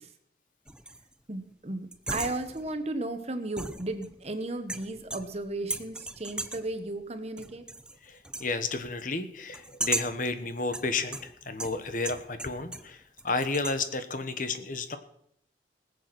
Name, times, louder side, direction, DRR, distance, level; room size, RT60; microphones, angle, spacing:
sound 1, 0.7-1.1 1.9-2.8 3.6-4.3 4.7-5.4 5.7-6.7 7.4-8.0 8.2-8.5 9.5-10.3 10.7-12.9 13.2-13.9, right 2 dB, 5° right, 0.6 m, -36 dB
voice 1, 1.3-7.6, right 2 dB, 35° right, 8 dB, 1.3 m, -35 dB
voice 2, 8.0-15.0, left 3 dB, 45° left, 9 dB, 1.3 m, -32 dB
19.5 x 8.1 x 6.1 m, 0.70 s
head